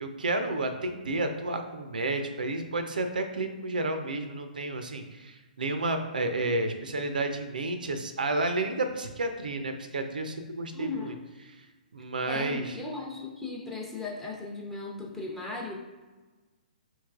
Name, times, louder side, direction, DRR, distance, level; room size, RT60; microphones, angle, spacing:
voice 1, 0.0-11.1 11.4-11.6 11.9-12.8, right 2 dB, 70° right, 7 dB, 0.4 m, -31 dB
voice 2, 10.7-11.2 12.2-15.7, left 3 dB, 5° left, -2 dB, 0.6 m, -37 dB
5.5 x 3.1 x 2.4 m, 1.2 s
figure-of-eight pair, 120°, 5 cm